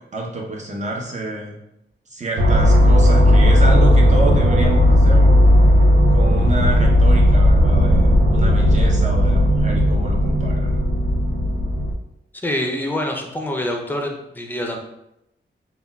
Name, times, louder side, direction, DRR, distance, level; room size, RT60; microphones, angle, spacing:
voice 1, 0.1-1.6 2.1-5.4 6.1-10.8, right 2 dB, 40° right, -1 dB, 0.7 m, -28 dB
sound 1, 2.4-11.9, equal, 85° right, 0.5 m, -14 dB
voice 2, 12.4-14.8, left 1 dB, 10° left, 2 dB, 0.5 m, -25 dB
3.7 x 2.3 x 2.2 m, 0.84 s
wide cardioid pair, 95°, 19 cm